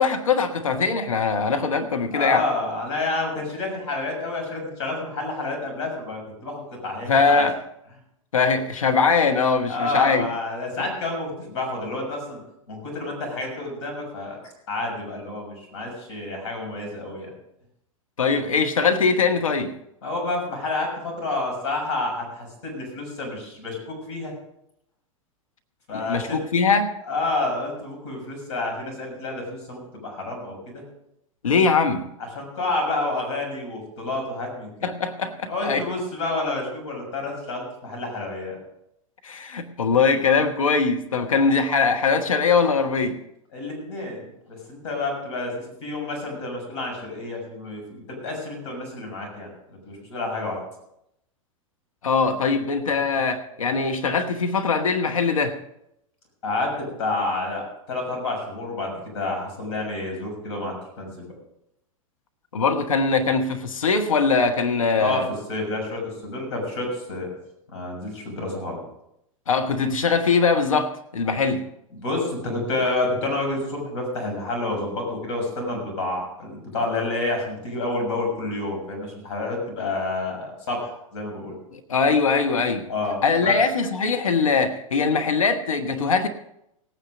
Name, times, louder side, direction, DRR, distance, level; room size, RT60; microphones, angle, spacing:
voice 1, 0.0-2.5 7.1-7.6 8.3-10.3 18.2-19.7 25.9-26.9 31.4-32.1 34.8-35.8 39.2-43.2 52.0-55.6 62.5-65.3 69.5-71.6 81.7-82.9 83.2-86.3, left 5 dB, 75° left, 1.2 m, -21 dB
voice 2, 2.1-7.4 9.7-12.4 12.7-14.4 14.7-17.3 20.0-24.3 25.9-26.4 27.1-30.8 32.3-34.7 35.5-38.6 41.3-41.5 43.5-44.2 44.5-49.5 49.8-50.6 56.4-61.2 65.0-67.3 67.7-68.8 71.9-81.5 82.9-83.5, left 2 dB, 60° left, 6.7 m, -29 dB
17.5 x 9.3 x 5.2 m
figure-of-eight pair, 95°, 17 cm